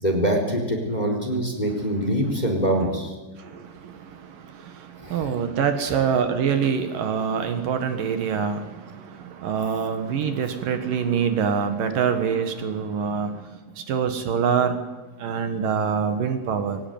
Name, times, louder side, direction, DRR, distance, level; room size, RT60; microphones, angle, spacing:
voice 1, 0.0-3.1 5.0-5.3, equal, 10° left, 2 dB, 3.7 m, -24 dB
voice 2, 3.4-13.5 13.8-14.8 15.2-16.8, right 7 dB, 70° right, 7 dB, 3.1 m, -25 dB
22.5 x 18.0 x 9.4 m, 1.2 s
omnidirectional pair, 4.2 m